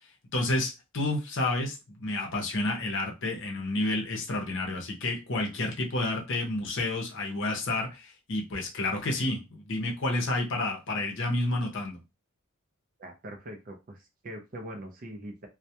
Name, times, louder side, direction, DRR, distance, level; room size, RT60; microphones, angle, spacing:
voice 1, 0.3-12.0, left 2 dB, 55° left, 1 dB, 0.6 m, -30 dB
voice 2, 13.0-15.5, right 1 dB, 40° right, 3 dB, 0.4 m, -42 dB
2.2 x 2.1 x 2.7 m, 0.27 s
head